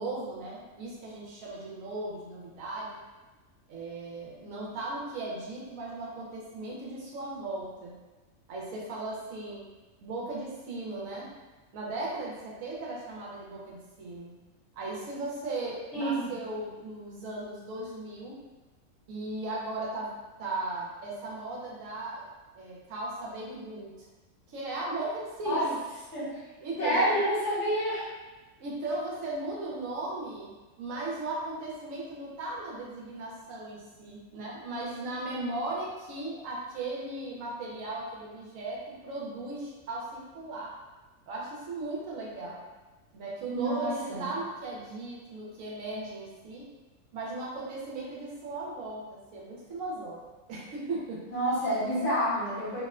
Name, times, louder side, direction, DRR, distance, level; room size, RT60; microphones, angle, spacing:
voice 1, 0.0-3.0 3.7-8.0 8.5-9.6 10.0-11.3 11.7-14.3 14.7-18.4 19.1-20.1 20.4-23.9 24.5-25.8 26.6-27.2 28.6-40.7 41.3-42.6 43.1-46.6 47.1-50.2 50.5-51.2, right 2 dB, 75° right, -5 dB, 1.0 m, -37 dB
voice 2, 15.9-16.3 25.4-25.6 26.1-26.4 26.8-28.0 43.5-44.3 51.3-52.8, equal, 55° left, -10 dB, 1.3 m, -28 dB
2.8 x 2.1 x 2.3 m, 1.2 s
omnidirectional pair, 1.5 m